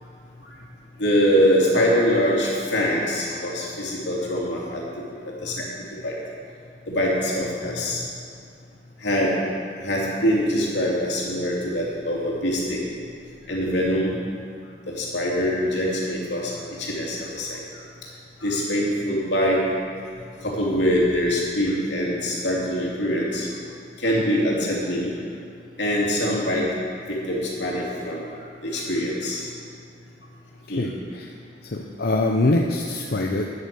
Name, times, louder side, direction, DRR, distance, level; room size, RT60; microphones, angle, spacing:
voice 1, 1.0-4.8 5.4-5.6 6.0-6.2 6.9-8.0 9.0-9.3 9.8-12.8 13.5-14.1 15.0-16.5 16.8-17.6 18.4-19.6 20.4-23.5 24.0-25.1 25.8-26.7 27.1-28.2 28.6-29.5 30.7-30.8, equal, 85° left, -4 dB, 2.9 m, -23 dB
voice 2, 31.7-33.5, left 2 dB, 60° left, 1 dB, 0.7 m, -23 dB
9.7 x 9.1 x 7.0 m, 2.4 s
head